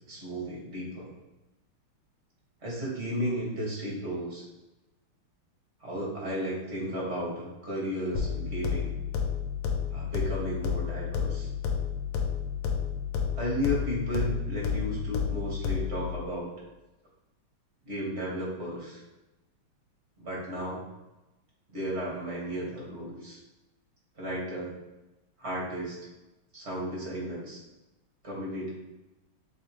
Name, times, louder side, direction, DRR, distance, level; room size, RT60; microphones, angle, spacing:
voice 1, 0.1-1.1 2.6-4.5 5.8-8.9 9.9-11.5 13.4-16.5 17.9-19.0 20.2-20.8 21.7-23.4 24.2-24.8 25.4-26.0 26.5-27.6 28.2-28.7, equal, 30° right, -5 dB, 2.2 m, -34 dB
sound 1, 8.1-16.1, left 7 dB, 80° left, 1.8 m, -31 dB
7.5 x 4.1 x 3.1 m, 1.0 s
omnidirectional pair, 2.4 m